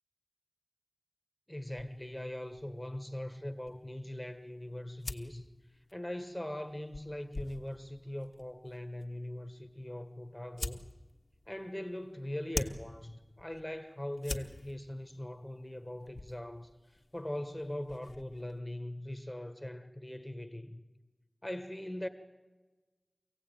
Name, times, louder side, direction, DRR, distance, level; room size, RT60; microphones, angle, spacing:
voice 1, 1.5-5.4 5.9-10.9 11.5-16.7 17.1-20.8 21.4-22.1, left 1 dB, 15° left, 1.4 m, -41 dB
sound 1, 1.7-18.6, left 2 dB, 70° left, 1.3 m, -47 dB
25.0 x 16.5 x 9.1 m
wide cardioid pair, 65°, 0 cm